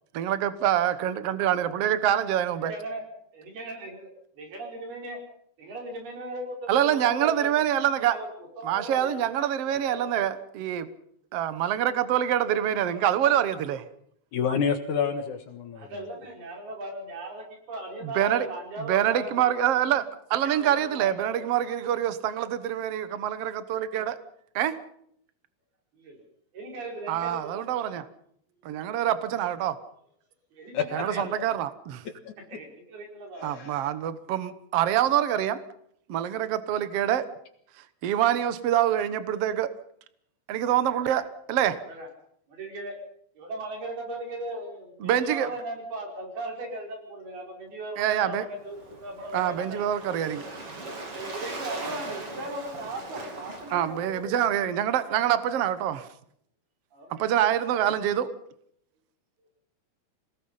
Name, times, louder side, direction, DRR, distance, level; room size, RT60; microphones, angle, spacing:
voice 1, 0.1-2.7 6.7-8.2 8.6-10.9 11.3-13.9 18.0-18.5 18.8-20.0 20.3-24.2 24.5-24.8 27.1-28.0 28.6-29.8 30.9-32.0 33.4-35.6 36.1-37.3 38.0-39.7 40.5-41.8 45.0-45.5 48.0-48.4 49.3-50.5 53.7-56.1 57.1-58.3, right 11 dB, 90° right, 12 dB, 1.3 m, -25 dB
voice 2, 2.7-3.0 3.3-4.1 4.4-5.2 5.6-7.8 8.1-8.3 8.6-9.1 9.7-10.3 15.8-19.7 20.6-21.5 25.9-26.2 26.5-27.6 30.5-31.3 32.5-33.5 41.9-42.1 42.5-43.0 43.4-49.9 51.1-54.4 55.0-55.2 56.9-57.4, right 1 dB, 70° right, 2 dB, 7.1 m, -38 dB
voice 3, 14.3-15.9 30.7-30.8 33.5-33.8, left 6 dB, 60° left, 7 dB, 2.5 m, -27 dB
Waves surf, 48.5-54.2, right 2 dB, 35° right, 3.8 m, -40 dB
26.5 x 19.0 x 5.6 m, 0.67 s
omnidirectional pair, 4.6 m